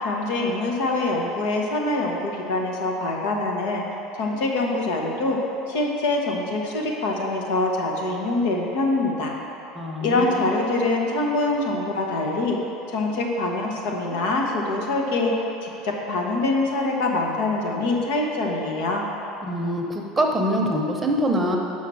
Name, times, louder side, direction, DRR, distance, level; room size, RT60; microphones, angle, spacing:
voice 1, 0.0-3.8 4.2-5.4 5.7-9.3 10.0-12.6 12.9-19.0, left 2 dB, 80° left, 0 dB, 1.1 m, -24 dB
voice 2, 9.7-10.3 19.4-21.6, equal, 15° right, 1 dB, 0.8 m, -24 dB
5.7 x 5.6 x 6.3 m, 2.9 s
supercardioid pair, 120°, 0 cm